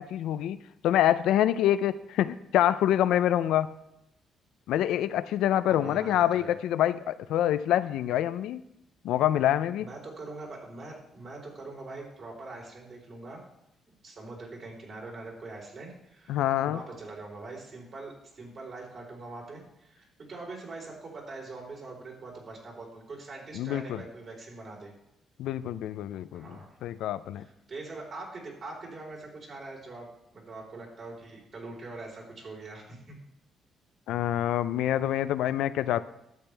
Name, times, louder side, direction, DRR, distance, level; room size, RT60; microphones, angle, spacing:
voice 1, 0.0-3.7 4.7-8.6 9.0-9.9 16.3-16.8 23.5-24.0 25.4-26.5 26.8-27.4 34.1-36.0, left 12 dB, 85° left, 13 dB, 0.4 m, -26 dB
voice 2, 5.7-6.6 9.8-13.4 13.8-24.9 26.3-26.7 27.3-30.1 30.3-33.2, right 3 dB, 50° right, -2 dB, 4.0 m, -43 dB
12.0 x 8.1 x 3.4 m, 0.82 s
cardioid pair, 90°, 0 cm